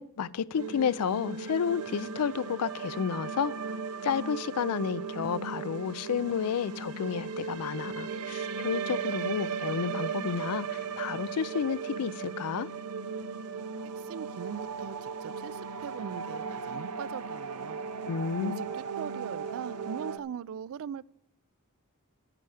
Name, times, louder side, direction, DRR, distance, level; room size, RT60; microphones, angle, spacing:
voice 1, 0.0-3.5 4.0-12.7 18.1-18.6, left 7 dB, 80° left, 0.4 m, -31 dB
sound 1, 0.5-20.2, right 6 dB, 90° right, 0.7 m, -37 dB
voice 2, 14.0-17.8 18.4-21.1, right 7 dB, 65° right, 0.3 m, -40 dB
11.5 x 9.7 x 4.8 m
head